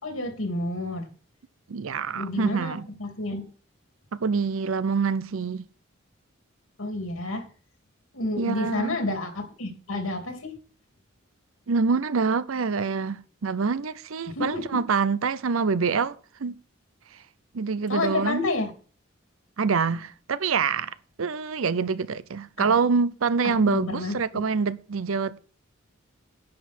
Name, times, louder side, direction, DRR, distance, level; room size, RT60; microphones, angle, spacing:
voice 1, 0.0-1.1 2.1-3.5 6.8-7.5 8.1-10.5 14.3-14.8 17.9-18.7 22.6-22.8 23.4-24.4, left 2 dB, 90° left, 2.7 m, -30 dB
voice 2, 1.7-2.9 4.2-5.6 8.4-9.0 11.7-16.6 17.5-18.5 19.6-25.4, right 5 dB, 85° right, 0.6 m, -26 dB
10.5 x 9.4 x 4.4 m
head